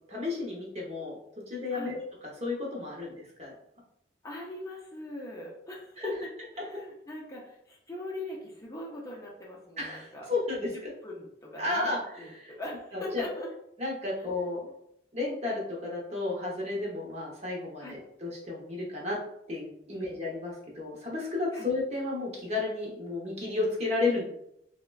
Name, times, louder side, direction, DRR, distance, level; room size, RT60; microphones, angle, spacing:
voice 1, 0.1-1.2 1.5-2.0 2.2-3.1 3.4-3.5 6.0-6.1 9.8-10.9 11.6-12.5 12.9-13.2 13.8-14.7 15.1-19.2 19.5-24.3, left 3 dB, 35° right, -3 dB, 0.7 m, -32 dB
voice 2, 4.2-6.3 6.5-10.3 10.6-11.9 12.2-13.5 14.2-14.4 17.8-18.0 19.9-20.2 21.5-21.7, left 1 dB, 20° left, -3 dB, 0.4 m, -41 dB
3.5 x 2.1 x 2.2 m, 0.76 s
head